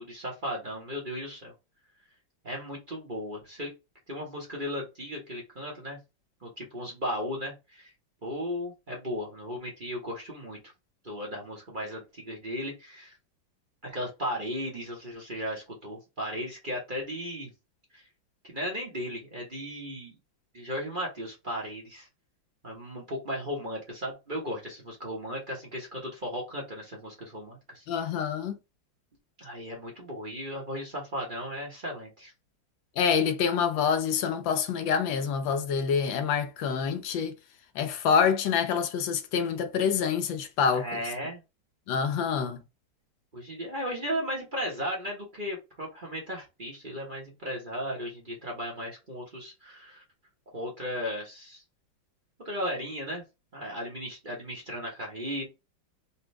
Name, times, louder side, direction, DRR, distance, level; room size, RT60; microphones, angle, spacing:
voice 1, 0.0-1.5 2.4-3.7 4.1-6.0 6.4-7.9 8.2-10.6 11.0-13.1 13.8-17.5 17.9-18.0 18.4-20.1 20.5-22.1 22.6-28.1 29.4-32.3 40.7-41.4 42.4-42.5 43.3-50.0 50.5-51.6 52.4-53.2 53.5-55.4, equal, 30° right, 1.1 m, -36 dB
voice 2, 27.9-28.6 33.0-37.3 37.8-41.0 41.9-42.6, left 6 dB, 80° left, 1.3 m, -26 dB
4.2 x 2.6 x 3.3 m
omnidirectional pair, 2.1 m